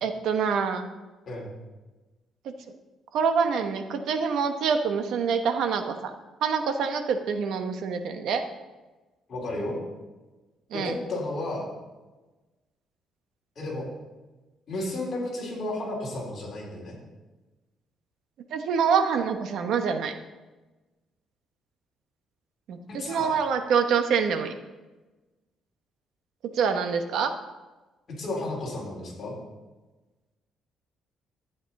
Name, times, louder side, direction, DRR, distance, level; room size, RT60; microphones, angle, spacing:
voice 1, 0.0-0.9 3.1-6.1 6.4-8.4 10.7-11.0 18.5-20.1 22.7-24.5 26.5-27.3, right 6 dB, 60° right, 7 dB, 0.9 m, -26 dB
voice 2, 9.3-9.8 10.7-11.7 13.6-13.9 14.7-17.0 22.9-23.4 28.2-29.4, left 2 dB, 35° left, -4 dB, 3.6 m, -33 dB
12.0 x 8.6 x 4.1 m, 1.2 s
cardioid pair, 175°, 0 cm